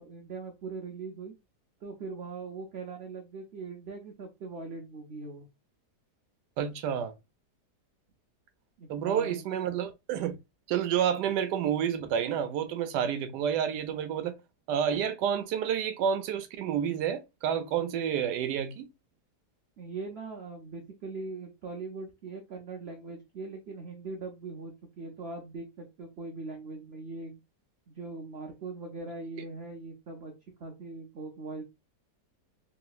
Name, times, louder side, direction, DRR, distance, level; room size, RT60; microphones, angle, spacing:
voice 1, 0.0-1.3 1.8-5.5 8.8-9.4 19.8-27.4 27.9-30.3 30.6-31.6, right 3 dB, 60° right, 0.7 m, -41 dB
voice 2, 6.6-7.1 8.9-10.4 10.7-14.4 14.7-18.9, right 8 dB, 85° right, 1.2 m, -29 dB
3.2 x 2.8 x 2.3 m
omnidirectional pair, 1.7 m